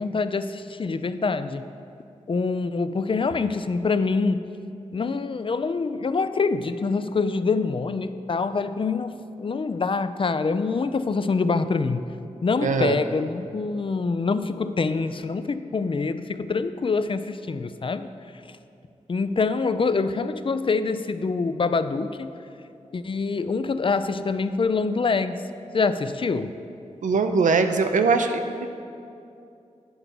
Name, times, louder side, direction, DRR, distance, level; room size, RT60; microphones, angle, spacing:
voice 1, 0.0-1.7 2.3-4.5 4.9-12.1 12.4-18.1 19.1-22.3 22.9-25.4 25.7-26.6, left 4 dB, 45° left, 12 dB, 0.4 m, -25 dB
voice 2, 12.6-13.0 27.0-28.7, right 4 dB, 90° right, 7 dB, 0.5 m, -21 dB
9.3 x 3.9 x 5.9 m, 2.6 s
cardioid pair, 45°, 13 cm